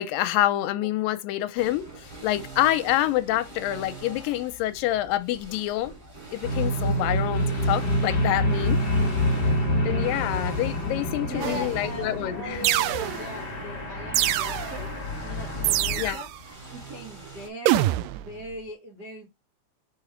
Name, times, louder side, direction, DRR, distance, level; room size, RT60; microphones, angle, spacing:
voice 1, 0.0-5.9 6.3-8.8 9.8-12.6 16.0-16.2, left 14 dB, 80° left, 2.1 m, -27 dB
sound 1, 1.6-17.5, right 3 dB, 15° right, 2.8 m, -44 dB
sound 2, 6.4-16.1, equal, 30° left, 0.9 m, -27 dB
voice 2, 11.2-16.3 16.7-19.3, right 1 dB, 60° right, 1.0 m, -40 dB
sound 3, 11.4-11.9 12.6-13.4 14.1-14.9 15.6-16.4 17.7-18.3, right 15 dB, 80° right, 2.0 m, -25 dB
5.2 x 4.9 x 4.4 m
omnidirectional pair, 4.2 m